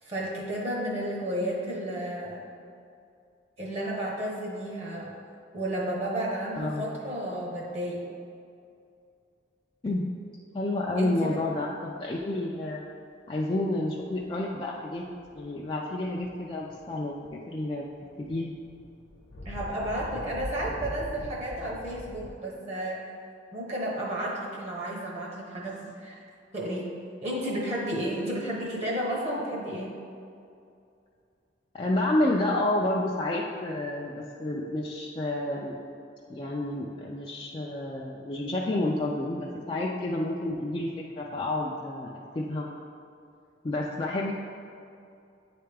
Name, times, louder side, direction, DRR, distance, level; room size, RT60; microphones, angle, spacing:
voice 1, 0.0-2.5 3.6-5.1 5.5-8.0 11.0-11.4 19.4-23.0 23.5-26.2 26.5-26.9 27.2-30.0, right 1 dB, 35° right, -3 dB, 0.9 m, -32 dB
voice 2, 6.6-6.9 9.8-10.1 10.5-12.8 13.3-15.0 15.4-17.9 18.2-18.5 31.7-35.8 36.3-42.7 43.6-44.3, left 1 dB, 25° left, -4 dB, 0.3 m, -30 dB
sound 1, 14.1-14.4 15.0-15.5 16.0-17.2 17.5-22.3, left 1 dB, 70° left, 0.9 m, -42 dB
9.1 x 3.4 x 3.4 m, 2.5 s
head